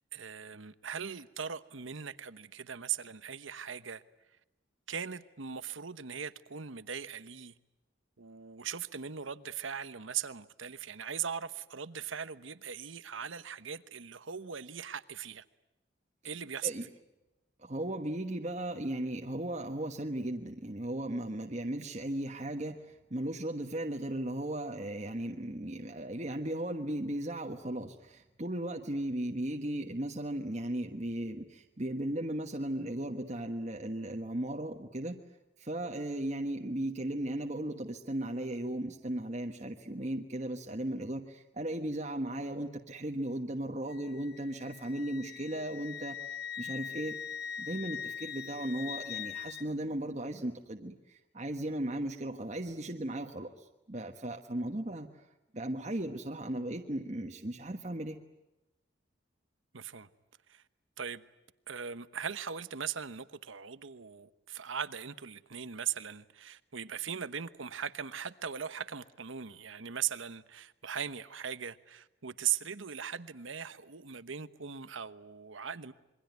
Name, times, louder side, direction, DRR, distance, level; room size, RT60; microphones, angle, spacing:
voice 1, 0.1-4.0 4.9-7.5 8.2-15.4 16.2-16.7 59.7-60.1 60.5-60.6 61.0-61.2 61.7-75.9, right 8 dB, 80° right, 1.1 m, -39 dB
voice 2, 17.6-35.2 35.6-47.2 47.6-55.1 55.5-58.2, right 1 dB, 35° right, 1.3 m, -36 dB
Wind instrument woodwind instrument, 43.9-49.7, left 8 dB, 55° left, 1.1 m, -42 dB
27.0 x 23.0 x 9.4 m
head